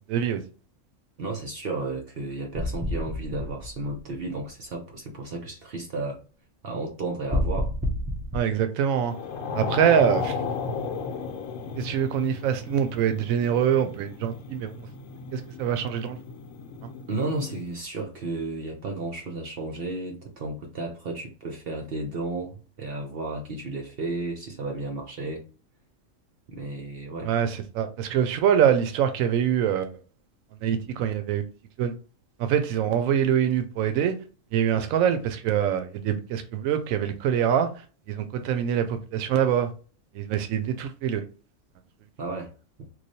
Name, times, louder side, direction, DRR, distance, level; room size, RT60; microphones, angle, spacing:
voice 1, 0.1-0.4 8.3-9.1 9.5-10.4 11.8-14.7 15.3-16.2 27.2-29.9 30.6-31.5 31.8-31.9 32.4-34.1 34.5-37.7 38.1-39.7 40.1-41.2, right 9 dB, 80° right, 1.0 m, -24 dB
voice 2, 1.2-6.2 6.6-7.7 17.1-25.5 26.5-27.3 42.2-42.5 42.8-42.9, right 2 dB, 55° right, 0.8 m, -33 dB
sound 1, 2.5-4.4 7.3-8.4, left 1 dB, 15° right, 0.3 m, -29 dB
sound 2, 9.0-17.7, left 5 dB, 75° left, 1.0 m, -35 dB
3.1 x 2.4 x 4.0 m
omnidirectional pair, 1.4 m